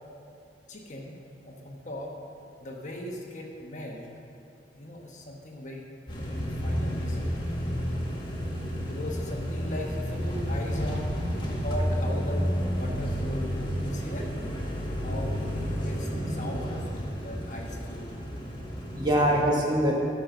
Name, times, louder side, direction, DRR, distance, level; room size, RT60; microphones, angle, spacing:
voice 1, 0.7-1.2 1.4-2.1 2.6-4.1 4.7-5.8 6.1-7.3 8.8-11.2 11.6-14.3 15.0-18.1 19.2-19.5, left 1 dB, 45° left, -1 dB, 1.2 m, -39 dB
sound 1, 6.1-19.4, equal, 25° left, 1.4 m, -31 dB
voice 2, 18.1-20.0, equal, 25° right, -2 dB, 1.3 m, -26 dB
13.5 x 5.3 x 6.1 m, 2.6 s
head